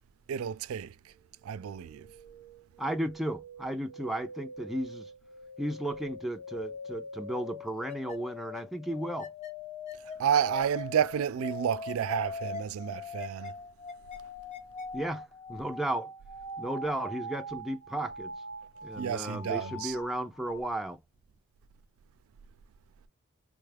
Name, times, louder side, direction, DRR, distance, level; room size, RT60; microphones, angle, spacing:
voice 1, 0.3-0.9 1.4-2.1 10.2-13.5 19.0-20.0, right 8 dB, 80° right, 0.3 m, -30 dB
sound 1, 1.5-20.6, left 2 dB, 35° left, 0.9 m, -42 dB
voice 2, 2.8-5.1 5.6-9.3 14.9-16.1 16.6-18.3 18.8-21.0, right 1 dB, ahead, 0.3 m, -34 dB
4.1 x 2.3 x 3.2 m
head